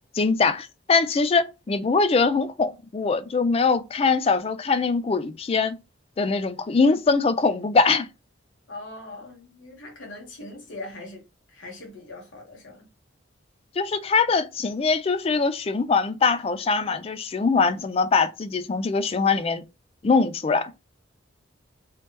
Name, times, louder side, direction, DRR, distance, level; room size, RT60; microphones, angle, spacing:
voice 1, 0.1-5.8 6.2-8.1 13.8-19.6 20.0-20.7, left 4 dB, 30° left, 0.3 m, -22 dB
voice 2, 8.7-11.2 11.5-12.8, left 2 dB, 80° left, 1.4 m, -41 dB
3.2 x 3.0 x 3.0 m
head